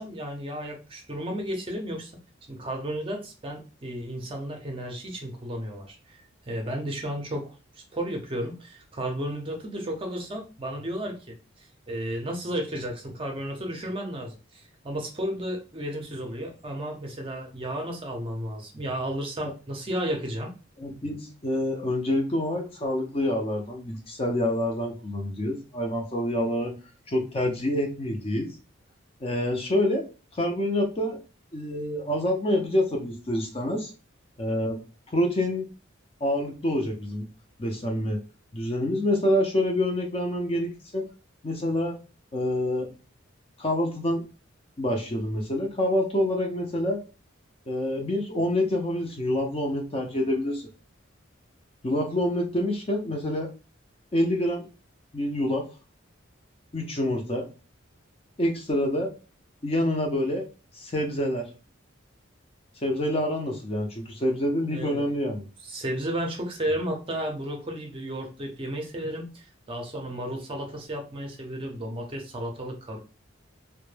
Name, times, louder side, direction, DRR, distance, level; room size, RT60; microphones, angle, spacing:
voice 1, 0.0-2.1 2.5-20.5 64.7-65.0 65.6-73.0, right 1 dB, 25° right, 2 dB, 0.5 m, -33 dB
voice 2, 20.8-26.7 27.1-28.5 29.2-30.0 30.3-31.2 31.5-33.9 34.4-34.8 35.1-35.7 36.2-37.3 37.6-38.2 38.5-41.1 41.4-42.0 42.3-42.9 43.6-44.2 44.8-47.0 47.7-50.7 51.8-53.5 54.1-54.6 55.1-55.7 56.7-57.5 58.4-59.1 59.6-60.5 60.7-61.5 62.8-65.4, left 1 dB, 30° left, 2 dB, 0.4 m, -27 dB
2.1 x 2.1 x 3.1 m, 0.33 s
head